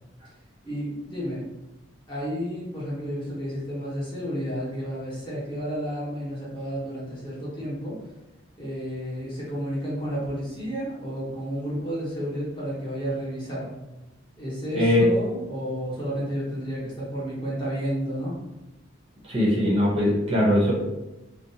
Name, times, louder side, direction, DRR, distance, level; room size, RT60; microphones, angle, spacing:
voice 1, 0.6-1.4 2.1-8.0 8.6-13.7 14.4-18.3, equal, 25° left, -8 dB, 0.9 m, -31 dB
voice 2, 19.2-20.7, left 1 dB, 30° right, -6 dB, 0.6 m, -21 dB
2.5 x 2.2 x 2.7 m, 0.98 s
head